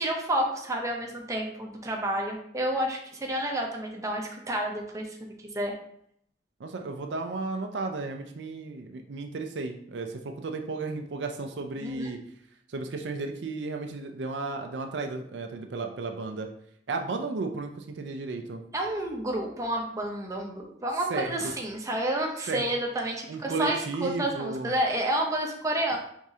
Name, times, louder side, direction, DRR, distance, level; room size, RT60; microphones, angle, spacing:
voice 1, 0.0-5.1 5.4-5.7 11.8-12.1 18.7-26.0, right 1 dB, 20° right, 0 dB, 0.7 m, -30 dB
voice 2, 6.6-12.2 12.7-16.5 16.9-18.6 21.1-21.5 22.5-22.6 23.3-24.7, right 3 dB, 75° right, 4 dB, 0.5 m, -34 dB
4.7 x 3.6 x 2.8 m, 0.70 s
head